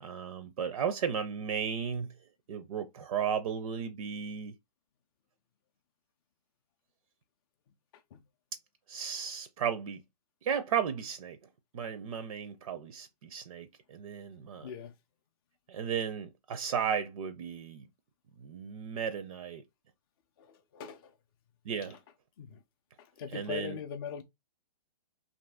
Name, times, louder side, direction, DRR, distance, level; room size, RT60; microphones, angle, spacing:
voice 1, 0.0-2.1 2.5-4.5 8.9-10.0 10.4-11.4 11.7-14.7 15.7-17.9 18.4-19.6 21.6-22.0 23.3-23.8, right 7 dB, 55° right, 0.5 m, -34 dB
voice 2, 20.4-21.1 22.4-22.6 23.2-24.2, left 7 dB, 35° left, 0.4 m, -40 dB
2.6 x 2.6 x 3.4 m
hypercardioid pair, 150°, 21 cm